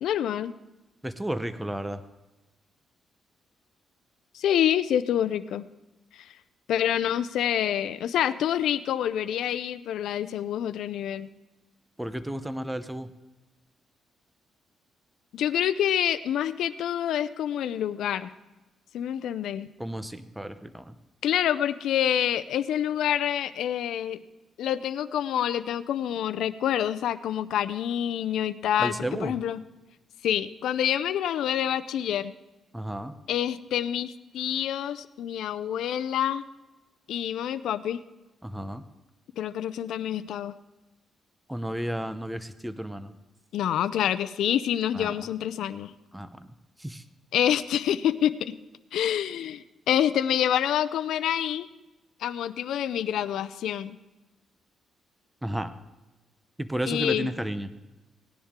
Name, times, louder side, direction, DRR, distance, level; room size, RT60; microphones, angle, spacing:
voice 1, 0.0-0.5 4.3-5.6 6.1-6.3 6.7-11.3 15.3-18.3 18.9-19.7 21.2-24.2 24.6-29.6 30.2-32.3 33.3-36.4 37.1-38.0 39.4-40.5 43.5-45.9 47.3-48.5 48.9-51.7 52.2-54.0 56.9-57.3, left 10 dB, 85° left, 15 dB, 0.5 m, -27 dB
voice 2, 1.0-2.0 12.0-13.1 19.8-20.9 28.8-29.3 32.7-33.1 38.4-38.8 41.5-43.1 44.9-45.1 46.1-46.4 46.8-47.0 55.4-55.7 56.6-57.7, right 1 dB, 5° right, 11 dB, 0.7 m, -32 dB
18.0 x 10.0 x 3.7 m, 1.1 s
cardioid pair, 115°, 0 cm